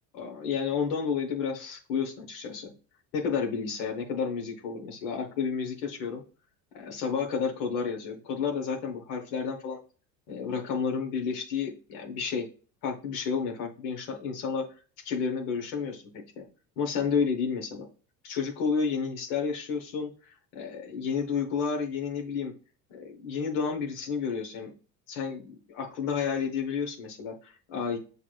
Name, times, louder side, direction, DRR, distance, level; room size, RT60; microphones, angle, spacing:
voice 1, 0.1-2.7 3.1-6.2 6.7-9.8 10.3-12.5 12.8-14.6 15.0-16.4 16.8-17.8 18.2-22.5 22.9-24.7 25.1-28.0, left 6 dB, 80° left, 2 dB, 1.1 m, -31 dB
5.9 x 3.3 x 2.3 m, 0.37 s
supercardioid pair, 95°, 39 cm